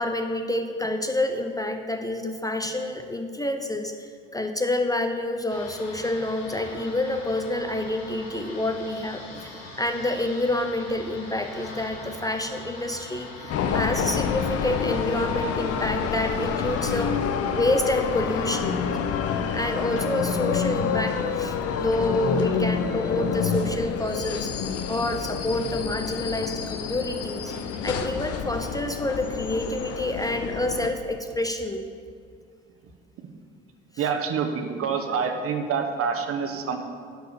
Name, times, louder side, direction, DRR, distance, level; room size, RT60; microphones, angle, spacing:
voice 1, 0.0-17.1 17.5-18.8 19.5-27.5 27.8-31.9, left 1 dB, 10° left, 6 dB, 0.7 m, -28 dB
sound 1, 5.5-17.1, left 2 dB, 75° left, 1.6 m, -42 dB
sound 2, 13.5-30.9, left 6 dB, 50° left, 0.8 m, -28 dB
voice 2, 34.0-36.8, right 6 dB, 50° right, 6 dB, 1.2 m, -27 dB
10.5 x 4.7 x 6.8 m, 2.2 s
hypercardioid pair, 60°, 30 cm